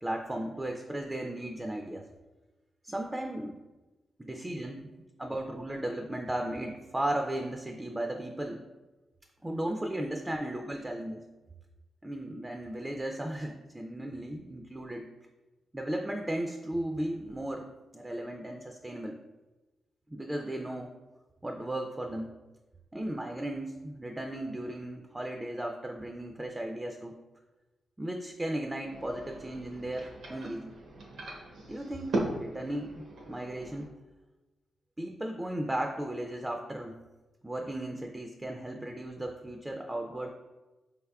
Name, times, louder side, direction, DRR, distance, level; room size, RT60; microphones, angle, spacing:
voice 1, 0.0-2.1 2.8-3.6 4.2-4.8 5.2-8.6 9.4-11.2 12.0-15.1 15.7-17.7 17.9-19.2 20.1-20.9 21.4-22.3 22.9-27.2 28.0-30.7 31.7-33.9 35.0-36.9 37.4-40.3, right 1 dB, 15° right, 3 dB, 0.3 m, -35 dB
sound 1, 28.8-33.9, right 2 dB, 85° right, 0.8 m, -38 dB
5.0 x 3.5 x 2.3 m, 1.1 s
cardioid pair, 100°, 0 cm